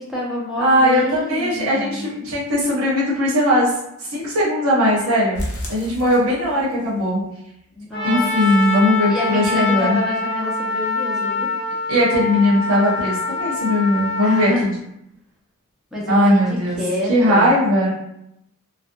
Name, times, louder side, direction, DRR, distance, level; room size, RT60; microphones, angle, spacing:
voice 1, 0.0-2.1 7.7-8.3 9.1-11.5 14.2-14.6 15.9-17.5, left 1 dB, ahead, -5 dB, 0.5 m, -27 dB
voice 2, 0.6-3.7 4.0-5.4 5.7-7.2 8.0-10.0 11.9-14.7 16.1-16.8 17.1-17.9, equal, 70° right, -7 dB, 0.8 m, -18 dB
sound 1, 5.3-6.9 7.2-7.3 7.7-7.8 8.2-8.3, equal, 50° left, 0.6 m, -31 dB
Trumpet, 7.9-14.5, left 3 dB, 25° left, 0.8 m, -24 dB
2.5 x 2.1 x 2.6 m, 0.80 s
head